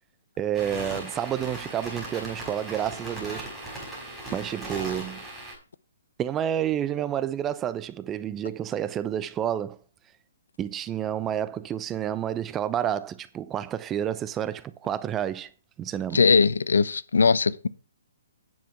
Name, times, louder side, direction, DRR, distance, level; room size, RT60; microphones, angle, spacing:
voice 1, 0.4-3.5 4.3-5.2 6.2-9.8 10.6-15.5 15.8-16.3, right 10 dB, 20° right, 0.6 m, -29 dB
sound 1, 0.5-5.6, right 1 dB, ahead, 5.1 m, -38 dB
voice 2, 16.1-17.7, left 5 dB, 75° left, 0.6 m, -20 dB
9.5 x 7.3 x 4.6 m
figure-of-eight pair, 130°, 0 cm